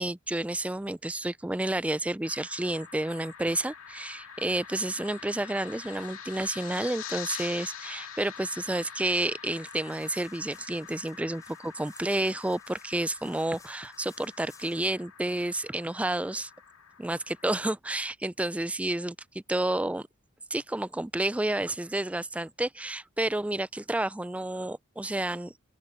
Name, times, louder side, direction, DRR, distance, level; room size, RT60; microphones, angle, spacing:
voice 1, 0.0-16.5 17.0-20.1 20.5-25.6, right 1 dB, 5° right, 0.3 m, -30 dB
sound 1, 2.2-17.6, left 8 dB, 80° left, 2.3 m, -45 dB
sound 2, 9.5-14.9, left 4 dB, 15° left, 3.8 m, -58 dB
open air
head